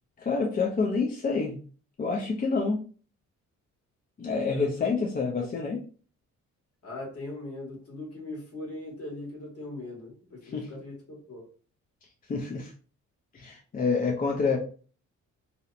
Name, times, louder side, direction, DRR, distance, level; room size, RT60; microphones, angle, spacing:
voice 1, 0.2-1.6 2.0-2.8 4.2-5.8 10.4-10.7 12.3-12.7 13.3-14.6, left 4 dB, 30° left, 1 dB, 0.4 m, -27 dB
voice 2, 4.5-4.9 5.3-5.5 6.8-11.5, left 2 dB, 50° left, -1 dB, 1.4 m, -40 dB
2.7 x 2.0 x 2.5 m, 0.40 s
cardioid pair, 90°, 30 cm